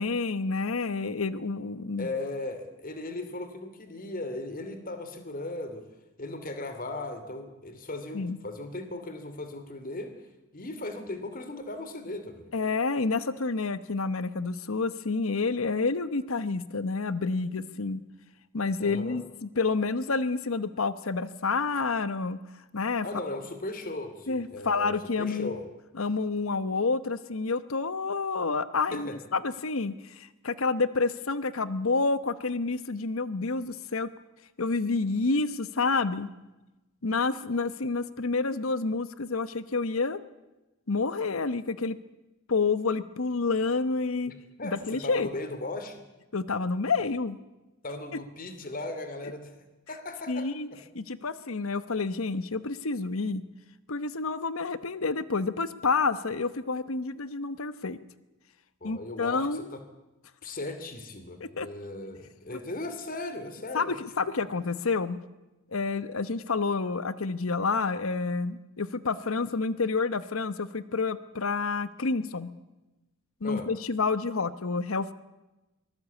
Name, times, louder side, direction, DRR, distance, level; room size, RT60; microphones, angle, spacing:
voice 1, 0.0-2.1 8.1-8.4 12.5-18.0 18.5-22.4 22.7-23.1 24.3-25.6 26.0-34.1 34.6-36.3 37.0-40.2 40.9-42.0 42.5-44.3 44.6-45.3 46.3-47.4 50.3-50.7 50.9-53.4 53.9-58.0 58.8-59.7 61.4-61.7 63.7-65.2 65.7-72.5 73.4-75.1, left 4 dB, 85° left, 14 dB, 1.0 m, -29 dB
voice 2, 2.0-5.9 6.2-10.2 10.5-12.5 18.8-19.2 23.0-25.6 28.9-29.2 44.6-46.0 47.8-49.5 49.9-50.8 58.8-59.8 60.4-63.9 64.3-64.4 73.4-73.7, left 2 dB, 45° left, 8 dB, 2.7 m, -37 dB
24.0 x 19.5 x 8.4 m, 1.0 s
head